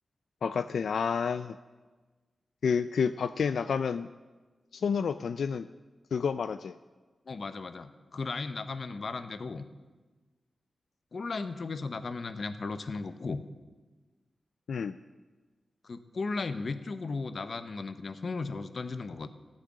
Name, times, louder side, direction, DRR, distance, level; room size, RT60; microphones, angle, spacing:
voice 1, 0.4-1.6 2.6-4.1 4.7-5.7 6.1-6.8 14.7-15.0, left 6 dB, 85° left, 12 dB, 0.3 m, -29 dB
voice 2, 7.3-9.7 11.1-13.4 15.8-19.3, left 4 dB, 50° left, 11 dB, 0.7 m, -36 dB
13.5 x 6.5 x 8.7 m, 1.3 s
wide cardioid pair, 145°, 0 cm